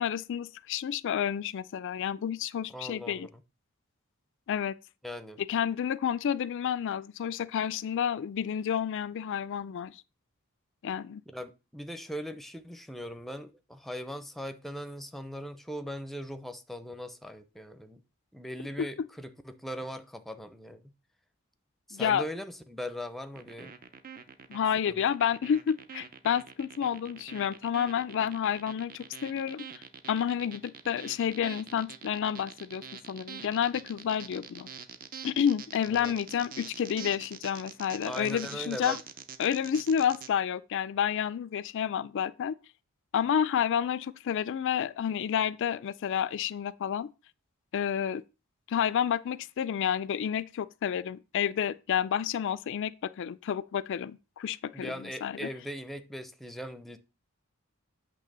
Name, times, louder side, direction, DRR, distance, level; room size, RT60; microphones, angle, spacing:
voice 1, 0.0-3.3 4.5-4.8 5.5-10.0 10.8-11.2 18.8-18.9 21.9-22.2 24.5-29.6 30.1-34.7 35.2-39.0 39.4-42.5 43.1-47.1 47.7-48.2 48.7-55.5, left 8 dB, 60° left, 0.4 m, -30 dB
voice 2, 2.7-3.3 5.0-5.4 11.3-18.0 18.3-20.9 21.9-23.7 24.9-25.0 35.9-36.1 38.0-39.0 54.7-57.0, equal, ahead, 0.6 m, -40 dB
sound 1, 23.4-40.3, right 7 dB, 40° right, 0.6 m, -45 dB
8.5 x 3.2 x 6.6 m
head